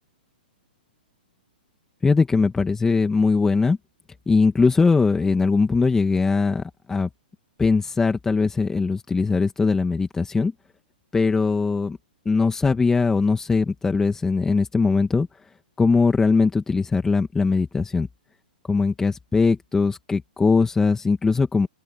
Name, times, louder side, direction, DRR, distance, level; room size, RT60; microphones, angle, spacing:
voice 1, 2.0-3.8 4.3-7.1 7.6-10.5 11.1-12.0 12.3-15.3 15.8-18.1 18.6-21.7, left 4 dB, 10° left, 1.9 m, -20 dB
open air
hypercardioid pair, 135°, 5 cm